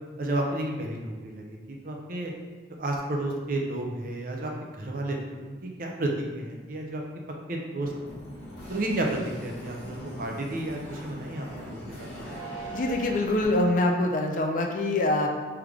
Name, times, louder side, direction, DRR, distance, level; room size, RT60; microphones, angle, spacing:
voice 1, 0.2-1.6 1.8-2.3 2.8-7.0 7.5-7.9 8.7-12.2, right 1 dB, 45° right, 1 dB, 0.5 m, -31 dB
sound 1, 7.8-13.4, right 1 dB, 60° left, 1.0 m, -40 dB
voice 2, 12.7-15.3, left 2 dB, 45° left, 3 dB, 0.4 m, -24 dB
3.4 x 3.2 x 3.5 m, 1.3 s
head